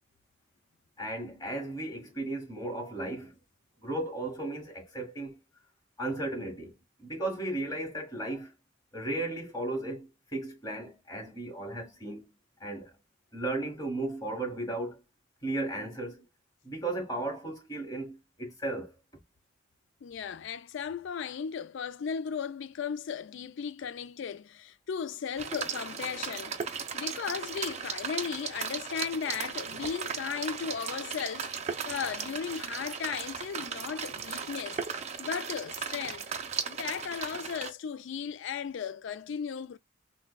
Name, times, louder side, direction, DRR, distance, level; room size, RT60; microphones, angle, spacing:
voice 1, 1.0-3.3 3.8-5.4 6.0-8.5 8.9-12.3 12.6-12.9 13.3-15.0 15.4-16.2 16.6-18.9, right 2 dB, 20° left, 1.3 m, -35 dB
voice 2, 20.0-26.6 26.9-31.5 31.8-34.8 35.2-36.3 36.7-39.8, left 7 dB, 60° left, 0.3 m, -36 dB
sound 1, 25.4-37.7, right 6 dB, 30° right, 0.5 m, -37 dB
5.8 x 2.1 x 2.2 m
head